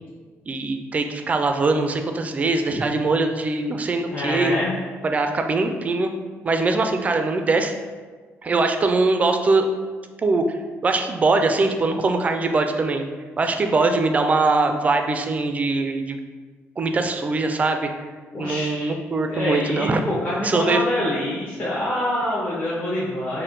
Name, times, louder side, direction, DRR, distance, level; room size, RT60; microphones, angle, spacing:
voice 1, 0.5-4.5 5.0-6.1 6.4-7.7 8.4-9.7 10.2-13.1 13.4-16.2 16.8-17.9 18.4-20.0 20.4-20.8, right 3 dB, 30° right, 5 dB, 0.3 m, -22 dB
voice 2, 4.1-4.7 18.3-18.9 19.3-23.4, left 1 dB, 35° left, -9 dB, 0.9 m, -26 dB
4.3 x 2.1 x 3.7 m, 1.4 s
cardioid pair, 120°, 5 cm